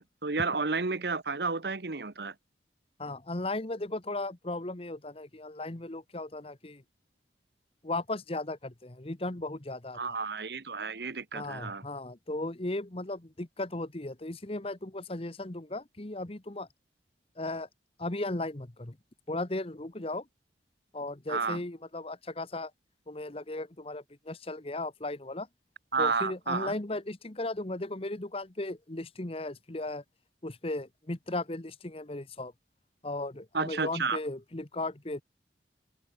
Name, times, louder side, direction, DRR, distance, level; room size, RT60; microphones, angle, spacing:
voice 1, 0.0-2.3 9.9-11.8 21.3-21.6 25.9-26.7 33.5-34.2, right 4 dB, 65° right, 1.2 m, -31 dB
voice 2, 3.0-6.8 7.8-10.0 11.3-16.7 17.4-17.7 18.0-19.0 19.3-20.3 20.9-22.7 23.1-25.5 26.0-30.0 30.4-32.5 33.0-35.2, left 2 dB, 35° left, 1.2 m, -36 dB
open air
head